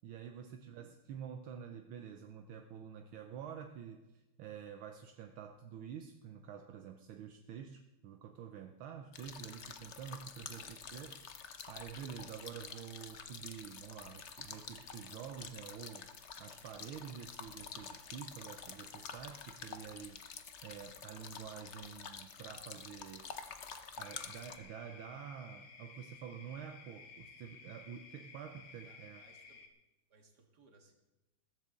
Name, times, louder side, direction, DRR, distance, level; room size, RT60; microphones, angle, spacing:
voice 1, 0.0-16.1 16.4-20.2 20.6-23.5 24.0-29.2, right 8 dB, 75° right, 6 dB, 1.6 m, -48 dB
voice 2, 0.6-1.0 10.2-10.8 28.8-29.6 30.1-30.9, right 4 dB, 50° right, 3 dB, 2.3 m, -65 dB
sound 1, 9.1-24.6, left 6 dB, 60° left, 0.7 m, -49 dB
sound 2, 24.0-29.7, left 5 dB, 90° left, 2.2 m, -55 dB
15.0 x 14.5 x 3.8 m, 1.0 s
omnidirectional pair, 2.4 m